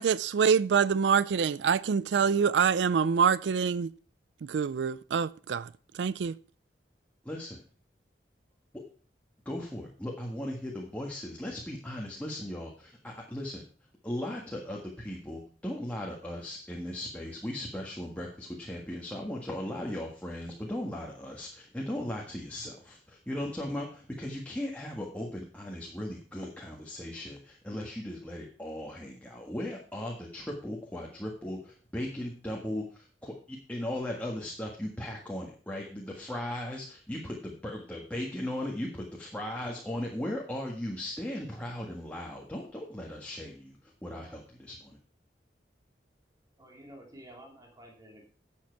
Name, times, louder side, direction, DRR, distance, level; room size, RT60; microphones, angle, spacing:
voice 1, 0.0-3.9 4.5-5.7 5.9-6.3, right 6 dB, 85° right, 0.4 m, -25 dB
voice 2, 7.2-7.6 9.4-13.6 14.0-43.8 44.0-45.0, left 1 dB, 10° left, 1.6 m, -37 dB
voice 3, 46.6-48.2, right 1 dB, 20° right, 2.9 m, -51 dB
11.5 x 7.6 x 4.6 m
head